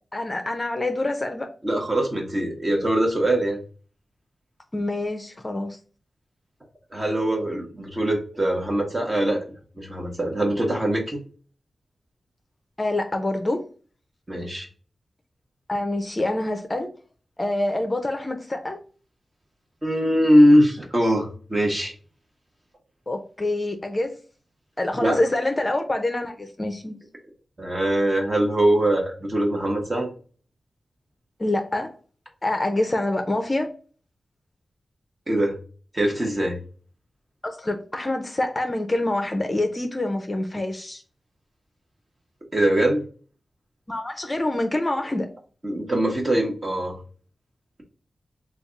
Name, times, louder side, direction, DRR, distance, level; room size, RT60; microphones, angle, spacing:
voice 1, 0.1-1.5 4.7-5.8 12.8-13.6 15.7-16.9 17.4-18.8 23.1-24.2 24.8-27.0 31.4-31.9 32.4-33.7 37.4-41.0 43.9-45.3, left 1 dB, 25° left, 0.5 m, -26 dB
voice 2, 1.6-3.6 6.9-9.4 9.8-11.2 14.3-14.7 19.8-21.9 25.0-25.2 27.6-30.1 35.3-35.6 35.9-36.6 42.5-43.0 45.6-47.0, right 1 dB, 30° right, 1.0 m, -22 dB
3.3 x 2.3 x 3.7 m
wide cardioid pair, 90°, 0 cm